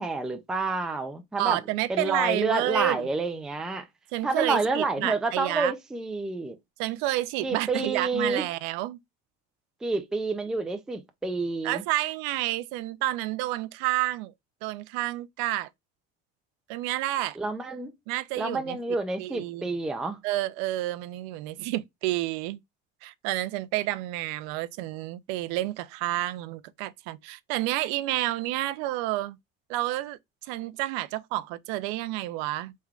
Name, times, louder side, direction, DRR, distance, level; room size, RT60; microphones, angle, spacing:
voice 1, 0.0-1.6 1.9-3.9 4.2-6.6 7.4-8.5 9.8-11.8 17.4-17.9 18.4-20.2, right 3 dB, ahead, 0.3 m, -29 dB
voice 2, 1.4-3.1 4.1-5.7 6.8-9.0 11.6-14.3 14.6-15.7 16.7-17.4 18.1-18.8 19.2-19.7 20.2-22.6 23.0-29.4 29.7-32.7, right 16 dB, 80° right, 0.5 m, -30 dB
3.6 x 3.2 x 2.3 m
cardioid pair, 135°, 32 cm